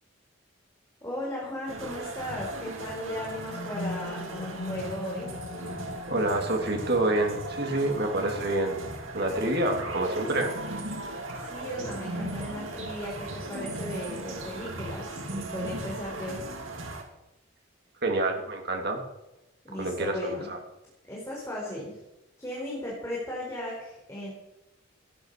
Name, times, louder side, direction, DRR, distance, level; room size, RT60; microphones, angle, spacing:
voice 1, 1.0-5.4 11.4-16.4 19.6-20.5 21.1-22.0 22.4-24.3, left 1 dB, 15° left, -4 dB, 4.6 m, -36 dB
sound 1, 1.7-17.0, right 2 dB, 80° right, 3.0 m, -37 dB
sound 2, 2.9-10.9, left 2 dB, 70° left, 1.3 m, -41 dB
voice 2, 6.1-8.8 9.1-10.6 18.0-19.0 19.7-20.6, right 2 dB, 55° right, 3 dB, 2.9 m, -27 dB
16.5 x 10.5 x 6.8 m, 0.97 s
head